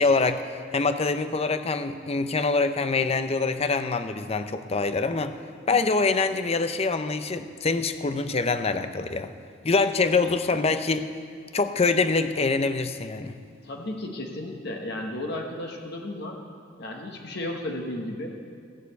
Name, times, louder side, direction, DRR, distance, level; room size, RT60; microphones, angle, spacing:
voice 1, 0.0-5.3 5.7-9.3 9.6-11.1 11.5-13.4, left 3 dB, 30° left, 10 dB, 0.6 m, -25 dB
voice 2, 13.6-16.4 16.8-18.3, left 1 dB, 55° left, 1 dB, 1.2 m, -34 dB
15.0 x 6.7 x 8.1 m, 2.2 s
head